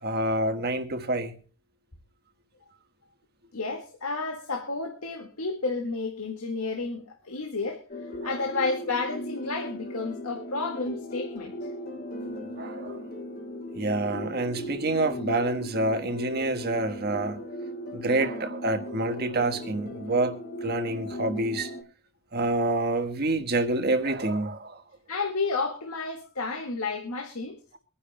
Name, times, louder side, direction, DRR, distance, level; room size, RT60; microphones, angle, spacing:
voice 1, 0.0-1.3 8.2-8.3 12.2-13.0 13.7-17.4 17.9-20.4 20.6-21.7 22.3-24.8, right 2 dB, 45° right, 1.4 m, -27 dB
voice 2, 3.5-7.8 8.2-11.5 25.1-27.6, left 3 dB, 85° left, 1.9 m, -31 dB
sound 1, 7.9-21.8, equal, 45° left, 2.4 m, -38 dB
25.0 x 10.0 x 2.2 m
head